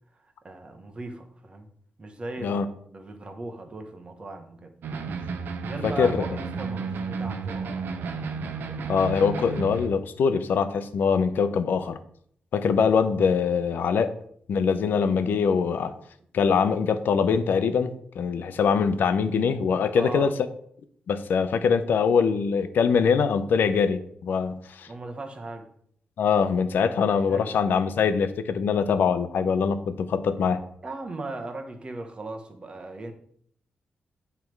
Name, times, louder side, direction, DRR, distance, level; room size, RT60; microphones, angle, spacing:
voice 1, 0.4-1.7 2.0-2.6 2.9-4.7 5.7-8.3 8.7-9.0 19.9-20.3 24.9-25.7 27.3-27.6 30.8-33.1, right 2 dB, 30° right, 5 dB, 1.1 m, -38 dB
sound 1, 4.8-9.9, right 5 dB, 85° right, 0.7 m, -32 dB
voice 2, 5.8-6.2 8.9-12.0 12.5-14.1 14.5-15.9 16.3-20.3 21.1-24.9 26.2-30.6, left 6 dB, 75° left, 11 dB, 0.6 m, -23 dB
9.3 x 3.3 x 4.6 m, 0.65 s
wide cardioid pair, 115°, 3 cm